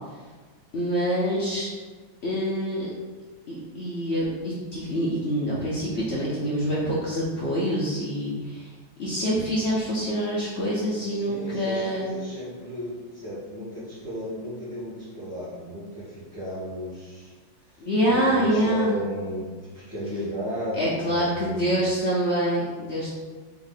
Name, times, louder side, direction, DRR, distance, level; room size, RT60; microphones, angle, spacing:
voice 1, 0.7-1.7 2.2-2.9 3.5-8.7 9.0-12.1 17.8-18.9 20.7-23.1, equal, 75° left, -6 dB, 0.6 m, -26 dB
voice 2, 11.0-17.3 17.7-19.4 19.7-21.8, equal, 10° right, -14 dB, 1.2 m, -34 dB
3.7 x 3.5 x 3.9 m, 1.4 s
omnidirectional pair, 2.0 m